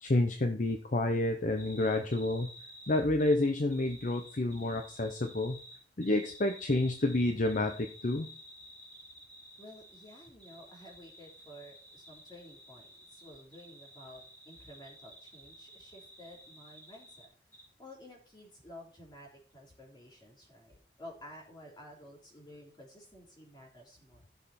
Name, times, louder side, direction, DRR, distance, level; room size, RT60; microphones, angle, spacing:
voice 1, 0.0-2.5 2.9-5.6 6.0-8.3, left 2 dB, 45° left, 6 dB, 0.8 m, -29 dB
sound 1, 1.6-17.3 17.5-17.6, equal, 10° left, 3.4 m, -53 dB
voice 2, 9.6-17.3 17.8-24.2, left 1 dB, 25° left, -2 dB, 3.6 m, -52 dB
13.5 x 6.7 x 4.3 m, 0.44 s
head